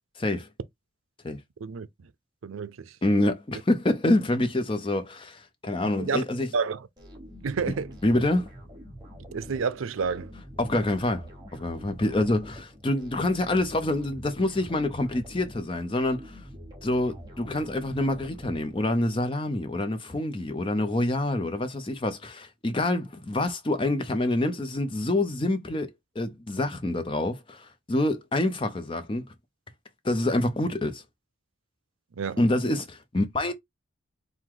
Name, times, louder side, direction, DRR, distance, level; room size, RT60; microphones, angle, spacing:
voice 1, 0.2-0.5 1.2-1.4 3.0-6.5 8.0-8.5 10.6-16.4 16.8-25.9 26.2-29.3 30.0-31.0 32.4-33.5, left 1 dB, 25° left, 0.6 m, -26 dB
voice 2, 1.6-2.1 2.4-3.0 6.0-6.2 6.5-6.9 7.4-7.9 9.3-10.3 32.1-32.4, right 5 dB, 85° right, 0.5 m, -30 dB
sound 1, 7.0-19.2, equal, 20° right, 1.1 m, -45 dB
4.7 x 2.1 x 3.7 m
head